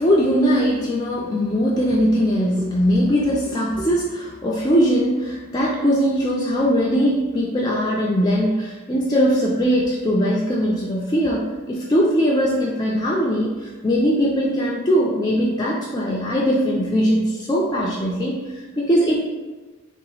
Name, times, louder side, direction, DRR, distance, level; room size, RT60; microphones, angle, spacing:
voice 1, 0.0-19.2, equal, 20° left, -5 dB, 0.3 m, -20 dB
3.6 x 2.8 x 3.9 m, 1.3 s
head